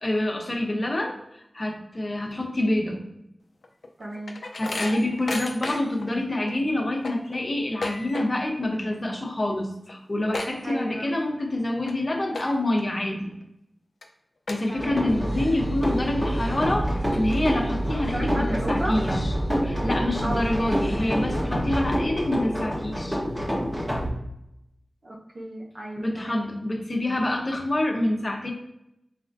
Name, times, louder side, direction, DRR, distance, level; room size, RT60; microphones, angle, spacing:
voice 1, 0.0-3.0 4.6-13.3 14.5-19.3 19.6-23.2 26.0-28.5, left 1 dB, 40° left, 1 dB, 0.9 m, -27 dB
sound 1, 3.6-6.1 6.5-6.6 6.9-8.6 8.8-9.2 9.5-9.6 9.8-11.2 11.7-11.9 12.3-12.8 13.3-13.4 14.0-14.1 14.5-15.2 15.6-15.7 16.5-16.6 16.9-17.8, left 2 dB, 90° left, 0.5 m, -34 dB
voice 2, 4.0-4.4 10.6-11.1 14.7-15.2 17.9-19.0 20.2-21.1 25.0-26.5, right 1 dB, 70° right, -3 dB, 1.2 m, -34 dB
sound 2, 14.8-24.1, equal, 10° right, 1.2 m, -28 dB
sound 3, 15.1-22.0, right 1 dB, 10° left, 0.5 m, -30 dB
4.2 x 3.8 x 2.6 m, 0.82 s
wide cardioid pair, 60°, 0 cm